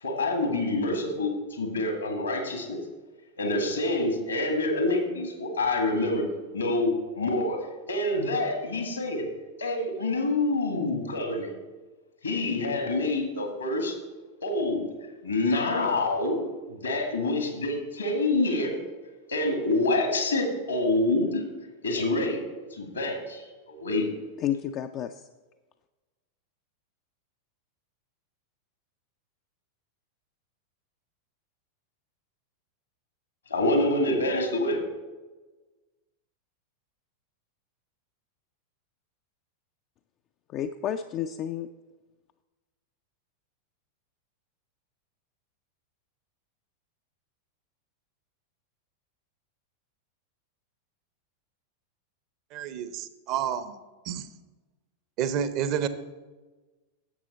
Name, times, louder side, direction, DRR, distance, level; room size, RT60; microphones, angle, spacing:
voice 1, 0.0-2.8 3.4-6.2 6.5-7.6 7.9-9.3 9.6-11.5 12.2-13.9 14.4-14.9 15.2-18.7 19.3-21.4 21.8-22.4 22.7-24.1 33.5-34.8, left 2 dB, 75° left, 4 dB, 1.8 m, -27 dB
voice 2, 24.4-25.2 40.5-41.7, left 10 dB, 35° left, 8 dB, 0.3 m, -31 dB
voice 3, 52.5-54.3 55.2-55.9, right 9 dB, 40° right, 12 dB, 0.7 m, -30 dB
11.0 x 7.6 x 4.0 m, 1.2 s
figure-of-eight pair, 90°, 0 cm